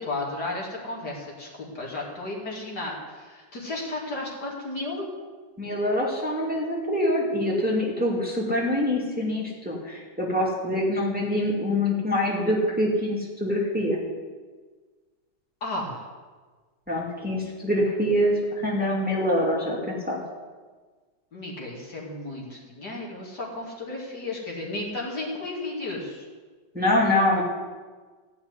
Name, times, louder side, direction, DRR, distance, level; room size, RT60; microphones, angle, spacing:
voice 1, 0.0-5.1 15.6-16.1 21.3-26.3, left 2 dB, 65° left, -2 dB, 3.2 m, -33 dB
voice 2, 5.6-14.0 16.9-18.3 18.6-20.2 26.7-27.4, left 1 dB, 5° right, -3 dB, 2.3 m, -25 dB
15.0 x 5.9 x 9.7 m, 1.4 s
omnidirectional pair, 1.9 m